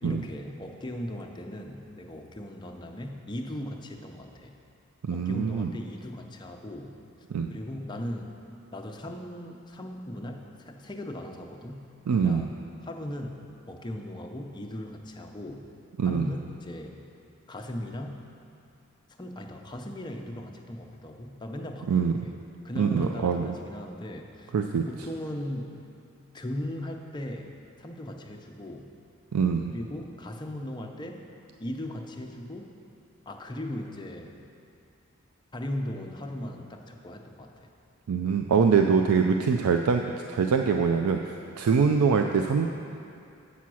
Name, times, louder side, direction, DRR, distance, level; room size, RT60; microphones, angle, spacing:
voice 1, 0.0-4.5 5.1-7.0 7.5-8.4 8.7-11.9 12.2-12.5 12.8-15.7 16.0-17.0 17.5-18.3 19.2-24.5 24.9-25.9 26.3-28.9 29.7-31.3 31.6-32.7 33.3-34.4 35.5-37.7, left 1 dB, 20° left, 2 dB, 0.6 m, -38 dB
voice 2, 5.0-5.7 7.3-7.5 12.1-12.5 16.0-16.3 21.9-22.2 22.8-23.5 24.5-24.8 29.3-29.7 38.1-42.7, right 5 dB, 85° right, 4 dB, 0.4 m, -24 dB
8.5 x 5.7 x 6.2 m, 2.6 s
head